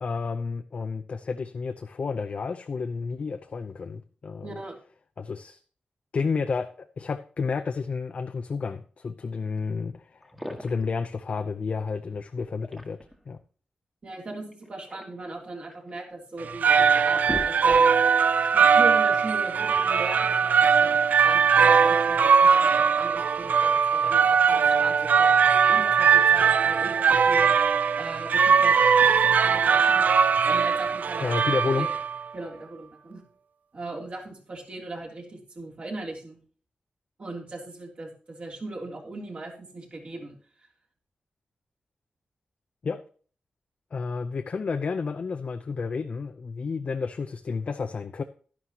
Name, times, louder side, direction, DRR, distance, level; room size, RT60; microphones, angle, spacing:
voice 1, 0.0-4.6 5.2-5.6 6.1-13.0 13.3-13.4 31.2-31.9 42.8-43.0 43.9-48.2, left 4 dB, 50° left, 0.6 m, -31 dB
voice 2, 4.4-4.8 14.0-17.8 18.4-27.5 28.0-30.1 30.5-31.3 31.8-31.9 32.3-33.2 33.7-36.4 37.2-40.7, right 2 dB, 45° right, 3.1 m, -39 dB
sound 1, 10.2-11.0 12.4-13.2 14.5-15.9 16.5-16.6 16.9-18.1, equal, ahead, 1.5 m, -39 dB
sound 2, 16.4-32.3, right 6 dB, 70° right, 0.4 m, -20 dB
11.5 x 11.0 x 2.9 m
wide cardioid pair, 130°, 3 cm